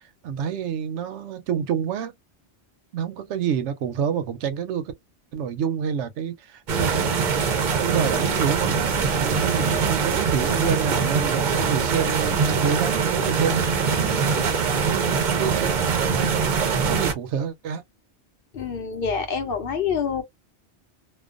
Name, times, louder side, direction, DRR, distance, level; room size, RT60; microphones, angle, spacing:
voice 1, 0.2-2.1 2.9-4.9 5.3-7.4 7.8-14.3 14.8-17.8, right 8 dB, 85° right, 0.9 m, -28 dB
sound 1, 6.7-17.1, right 5 dB, 55° right, 0.6 m, -23 dB
voice 2, 18.5-20.2, left 6 dB, 60° left, 0.8 m, -26 dB
2.3 x 2.2 x 2.4 m
omnidirectional pair, 1.1 m